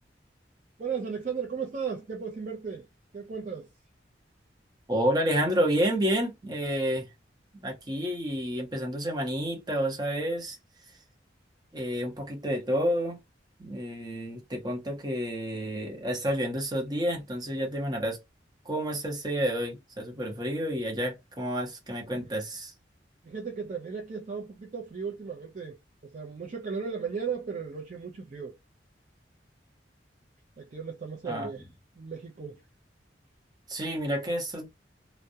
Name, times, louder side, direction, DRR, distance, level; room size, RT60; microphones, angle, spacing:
voice 1, 0.8-2.9 3.1-3.7 22.1-22.2 23.2-28.5 30.6-31.7 32.0-32.6, right 6 dB, 40° right, 0.4 m, -36 dB
voice 2, 4.9-7.1 7.5-10.6 11.7-13.2 13.6-18.2 18.6-22.7 31.2-31.5 33.7-34.7, equal, 20° right, 0.8 m, -29 dB
2.3 x 2.0 x 2.6 m
head